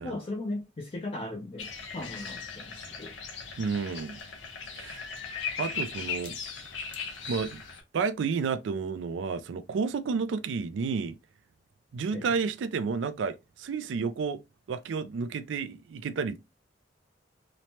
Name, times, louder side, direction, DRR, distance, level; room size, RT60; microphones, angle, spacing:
voice 1, 0.0-3.1 12.1-12.2, left 2 dB, 30° left, 0.4 m, -37 dB
sound 1, 1.6-7.8, left 5 dB, 85° left, 0.7 m, -38 dB
voice 2, 3.6-4.2 4.8-5.1 5.6-6.4 7.3-7.6 7.9-11.2 11.9-14.4 14.7-16.4, right 5 dB, 80° right, 0.3 m, -31 dB
3.0 x 2.1 x 2.7 m
head